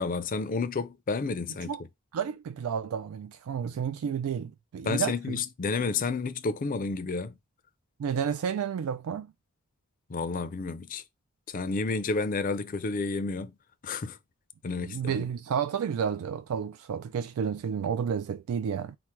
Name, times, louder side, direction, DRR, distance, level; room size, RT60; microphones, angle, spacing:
voice 1, 0.0-1.8 4.8-7.4 10.1-11.0 11.5-13.5 13.8-14.2 14.6-15.2, left 4 dB, 40° left, 0.4 m, -30 dB
voice 2, 2.1-5.4 8.0-9.3 14.8-19.0, right 7 dB, 80° right, 0.3 m, -31 dB
4.8 x 2.1 x 4.3 m
head